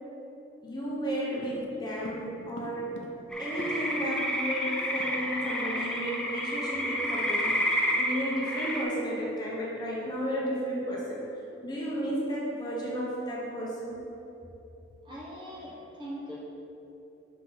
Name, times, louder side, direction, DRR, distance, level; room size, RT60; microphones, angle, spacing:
voice 1, 0.6-3.0 3.4-11.2 11.6-14.0, equal, 20° left, -5 dB, 0.9 m, -33 dB
sound 1, 1.4-4.1 4.4-4.5 4.7-5.7 6.0-6.2 6.6-6.8, left 1 dB, 85° left, 0.7 m, -46 dB
sound 2, 3.3-8.8, equal, 5° left, 0.5 m, -30 dB
voice 2, 15.0-16.4, equal, 25° right, -5 dB, 1.1 m, -41 dB
6.2 x 5.6 x 4.0 m, 2.9 s
head